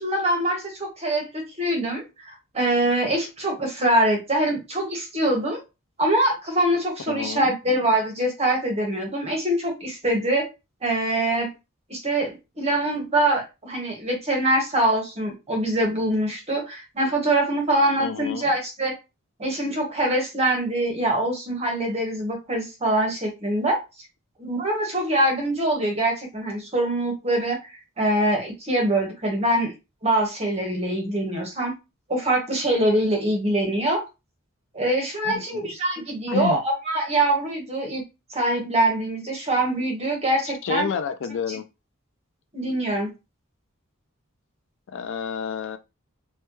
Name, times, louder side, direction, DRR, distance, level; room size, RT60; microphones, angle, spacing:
voice 1, 0.0-5.6 6.0-10.5 10.8-11.5 11.9-18.9 19.4-23.8 24.4-27.6 28.0-29.7 30.0-31.7 32.1-34.0 34.7-38.0 38.3-40.9 42.5-43.1, right 1 dB, 30° right, 1.2 m, -24 dB
voice 2, 7.1-7.5 18.0-18.5 35.2-35.6 36.3-36.6 40.6-41.6 44.9-45.8, left 6 dB, 60° left, 0.4 m, -29 dB
3.2 x 2.2 x 3.0 m
head